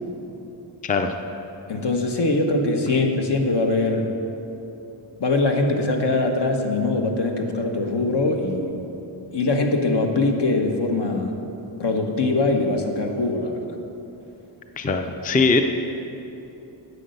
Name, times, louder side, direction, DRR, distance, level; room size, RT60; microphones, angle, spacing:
voice 1, 0.8-1.1 14.8-15.6, left 4 dB, 20° left, 6 dB, 0.4 m, -21 dB
voice 2, 1.7-4.1 5.2-8.8 9.3-11.3 11.8-13.6, left 2 dB, 65° left, 3 dB, 1.2 m, -22 dB
9.9 x 8.0 x 6.6 m, 3.0 s
wide cardioid pair, 145°, 45 cm